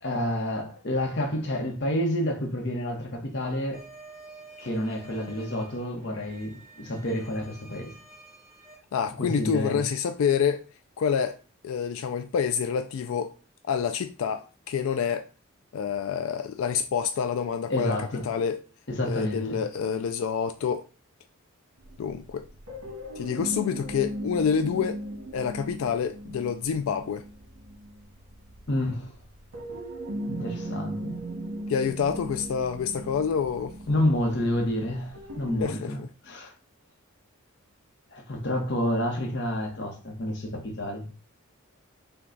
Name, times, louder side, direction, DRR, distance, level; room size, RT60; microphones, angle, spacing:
voice 1, 0.0-3.8 4.6-7.9 9.2-9.9 17.7-18.3 18.9-19.6 28.7-29.1 30.3-31.2 33.9-36.5 38.1-41.1, left 1 dB, 55° left, 0.9 m, -29 dB
sound 1, 3.7-8.7, right 3 dB, 5° right, 1.2 m, -50 dB
voice 2, 8.9-10.6 11.0-11.4 11.6-13.3 13.7-15.3 15.7-18.6 19.0-20.9 22.0-22.4 23.2-25.0 25.3-27.2 31.7-33.8 35.6-36.1, left 7 dB, 75° left, 0.3 m, -27 dB
sound 2, 21.8-35.6, right 1 dB, 85° right, 1.6 m, -38 dB
5.8 x 2.3 x 3.8 m
head